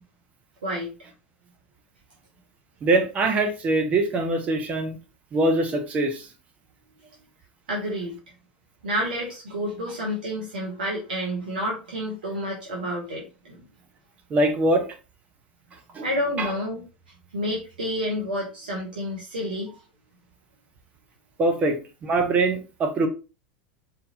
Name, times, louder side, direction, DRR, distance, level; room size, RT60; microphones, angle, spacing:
voice 1, 2.8-5.0 5.3-6.2 14.3-14.8 15.9-16.0 16.4-16.5 21.4-23.1, right 2 dB, 30° right, 1.1 m, -23 dB
voice 2, 7.7-8.1 8.8-13.6 16.0-16.8 17.3-19.7, equal, 70° right, 1.2 m, -29 dB
4.3 x 3.3 x 2.8 m
figure-of-eight pair, 80°, 5 cm